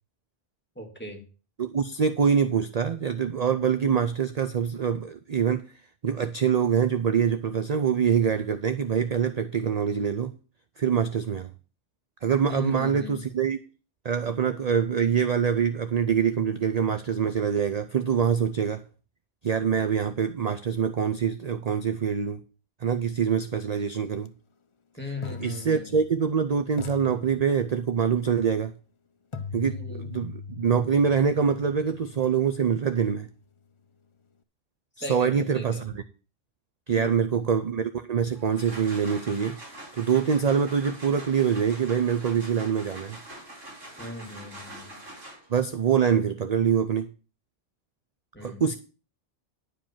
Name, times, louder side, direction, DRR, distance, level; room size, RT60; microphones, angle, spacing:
voice 1, 0.8-1.2 12.5-13.2 25.0-26.0 29.6-30.1 35.0-35.8 36.9-37.4 44.0-45.0 48.3-48.6, left 2 dB, 10° left, 1 dB, 2.4 m, -38 dB
voice 2, 1.6-5.6 6.0-10.3 10.8-11.5 12.2-13.6 14.0-18.8 19.4-22.4 22.8-24.3 25.4-28.7 29.5-33.3 35.0-36.0 36.9-39.6 40.0-43.2 45.5-47.1 48.4-48.8, right 7 dB, 45° right, 10 dB, 0.6 m, -25 dB
sound 1, 24.1-24.3 25.2-26.4 26.8-28.0 29.3-33.2, left 5 dB, 35° left, 0.5 m, -41 dB
sound 2, 38.3-45.7, right 1 dB, 75° right, 4.2 m, -44 dB
10.5 x 5.1 x 7.3 m, 0.35 s
omnidirectional pair, 1.3 m